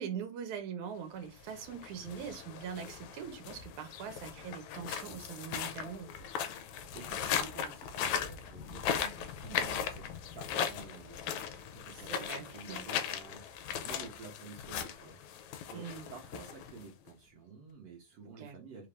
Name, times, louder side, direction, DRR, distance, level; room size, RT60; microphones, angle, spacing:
voice 1, 0.0-6.1 12.1-12.8 15.7-16.1 18.4-18.6, right 7 dB, 85° right, 2.3 m, -42 dB
sound 1, 1.4-17.1, left 8 dB, 80° left, 1.9 m, -38 dB
voice 2, 6.9-10.1 10.3-18.9, right 4 dB, 65° right, 1.7 m, -51 dB
4.9 x 2.5 x 3.4 m
omnidirectional pair, 3.3 m